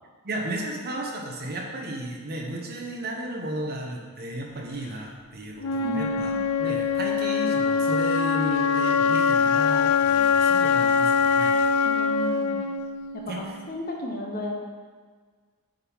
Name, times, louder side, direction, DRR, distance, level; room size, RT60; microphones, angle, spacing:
voice 1, 0.2-6.3 6.6-11.5 13.3-13.4, right 1 dB, 45° right, 0 dB, 0.9 m, -34 dB
Wind instrument woodwind instrument, 5.6-13.6, left 5 dB, 75° left, 0.3 m, -23 dB
voice 2, 5.8-6.3 11.8-12.6 13.1-14.6, left 1 dB, 40° left, 0 dB, 0.9 m, -33 dB
7.6 x 3.7 x 4.6 m, 1.5 s
head